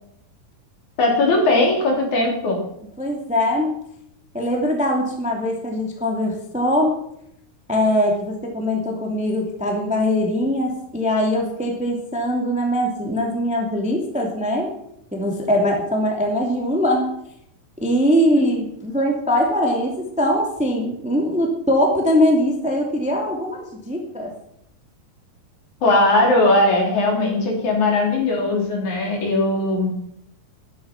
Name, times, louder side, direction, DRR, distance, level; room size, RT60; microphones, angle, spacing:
voice 1, 1.0-2.6 25.8-29.9, left 2 dB, 55° left, 1 dB, 4.5 m, -19 dB
voice 2, 3.0-3.7 4.3-6.9 7.7-14.7 15.1-17.1 17.8-24.3, equal, 5° right, 1 dB, 1.7 m, -21 dB
12.5 x 12.5 x 6.0 m, 0.74 s
omnidirectional pair, 4.1 m